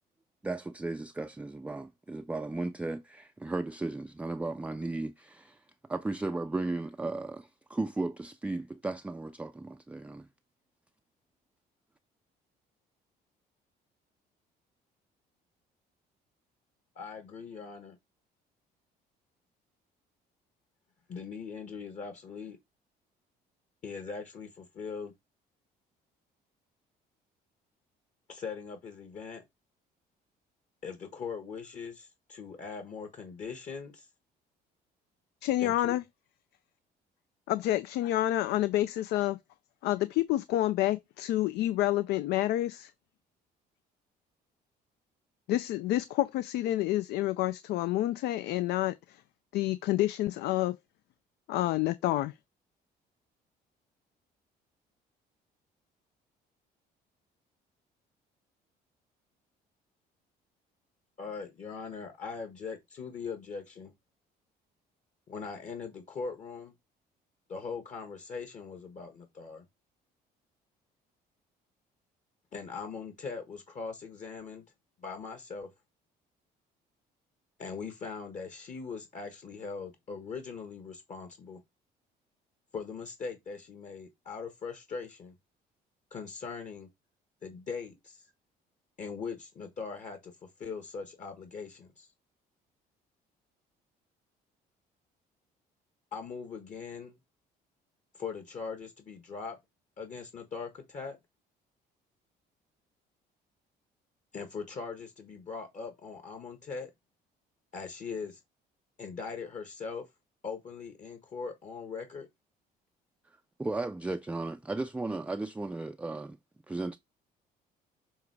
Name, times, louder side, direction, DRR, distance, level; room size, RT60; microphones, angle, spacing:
voice 1, 0.4-5.6 5.9-10.3 113.6-116.4 116.7-117.0, right 2 dB, 10° right, 0.4 m, -35 dB
voice 2, 16.9-18.0 21.1-22.6 23.8-25.1 28.3-29.4 30.8-34.1 35.6-35.9 61.2-63.9 65.3-66.7 67.5-69.6 72.5-74.6 75.0-75.7 77.6-81.6 82.7-85.3 86.1-86.9 87.4-88.2 89.0-90.3 90.6-92.1 96.1-97.2 98.1-99.6 100.0-101.2 104.3-106.9 107.7-108.4 109.0-110.0 110.4-112.3, left 5 dB, 45° left, 1.4 m, -40 dB
voice 3, 35.4-36.0 37.5-39.4 39.8-42.9 45.5-49.2 49.5-50.8 51.5-52.3, left 15 dB, 80° left, 0.4 m, -28 dB
7.2 x 3.0 x 4.7 m
cardioid pair, 110°, 17 cm